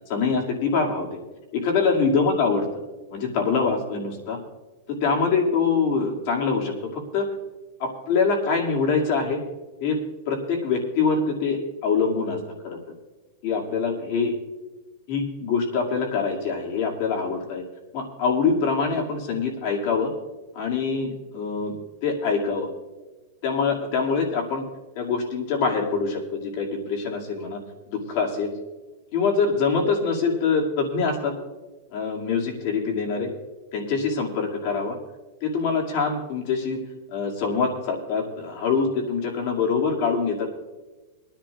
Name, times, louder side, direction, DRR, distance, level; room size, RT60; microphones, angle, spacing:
voice 1, 0.1-1.2 1.5-2.7 3.1-4.4 4.9-7.3 7.8-9.4 9.8-10.0 10.3-12.8 13.4-14.3 15.1-17.6 17.9-20.1 20.5-21.7 22.0-22.7 23.4-24.7 24.9-27.6 27.9-28.5 29.1-31.4 31.9-33.3 33.7-35.0 35.4-36.8 37.1-40.5, left 5 dB, 45° left, -1 dB, 2.4 m, -24 dB
24.5 x 10.5 x 2.5 m, 1.2 s
supercardioid pair, 160°, 0 cm